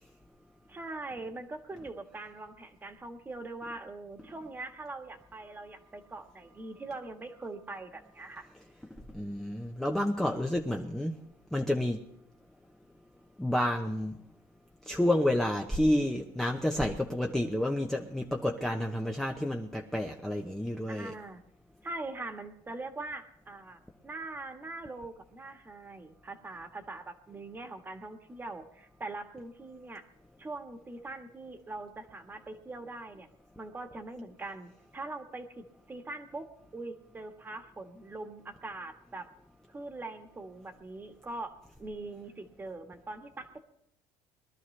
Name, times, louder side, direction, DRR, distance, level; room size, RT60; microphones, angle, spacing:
voice 1, 0.7-8.5 20.9-21.4 21.8-30.0 30.4-33.3 33.6-36.5 36.7-39.3 39.7-41.5 41.8-43.6, right 2 dB, 15° right, 6 dB, 1.5 m, -42 dB
voice 2, 9.1-11.2 11.5-12.1 13.4-14.2 14.9-21.1, left 1 dB, 5° left, 1 dB, 0.8 m, -30 dB
22.5 x 12.5 x 3.3 m, 0.75 s
cardioid pair, 130°, 11 cm